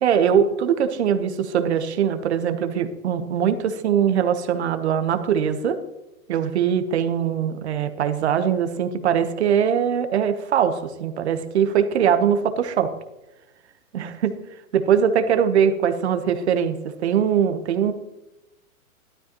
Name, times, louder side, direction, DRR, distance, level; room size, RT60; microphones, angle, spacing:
voice 1, 0.0-5.8 6.3-12.9 13.9-14.4 14.7-16.8 17.0-17.9, right 8 dB, 50° right, 9 dB, 1.1 m, -21 dB
12.5 x 11.5 x 3.0 m, 0.95 s
hypercardioid pair, 170°, 41 cm